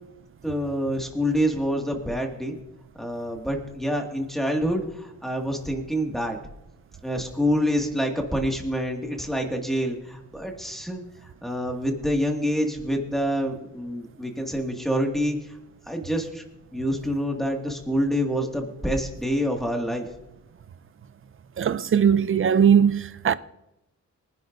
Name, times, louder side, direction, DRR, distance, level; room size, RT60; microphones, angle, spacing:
voice 1, 0.4-2.6 3.0-6.4 7.0-11.0 11.4-15.4 15.9-16.4 16.7-20.0, equal, ahead, 2.0 m, -27 dB
voice 2, 21.6-23.3, right 8 dB, 40° right, 0.5 m, -19 dB
24.0 x 10.5 x 2.6 m
wide cardioid pair, 170°, 32 cm